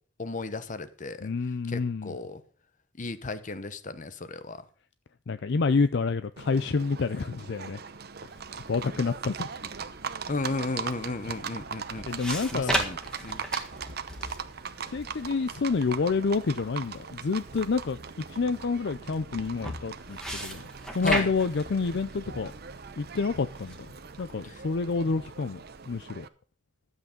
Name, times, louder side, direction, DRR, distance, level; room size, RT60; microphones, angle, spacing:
voice 1, 0.2-1.3 1.7-2.4 3.0-4.6 10.3-12.0 12.5-13.0 13.2-13.4 21.0-21.3 24.4-24.6, left 3 dB, 40° left, 0.9 m, -34 dB
voice 2, 1.2-2.1 5.3-7.8 8.7-9.5 12.1-12.8 14.9-18.0 18.3-20.6 20.9-22.5 23.0-23.9 24.2-25.6 25.9-26.3, left 4 dB, 60° left, 0.5 m, -28 dB
Livestock farm animals working animals, 6.4-26.3, right 6 dB, 55° right, 0.8 m, -40 dB
sound 1, 8.3-26.0, right 1 dB, 5° left, 1.8 m, -39 dB
12.5 x 8.2 x 5.2 m
head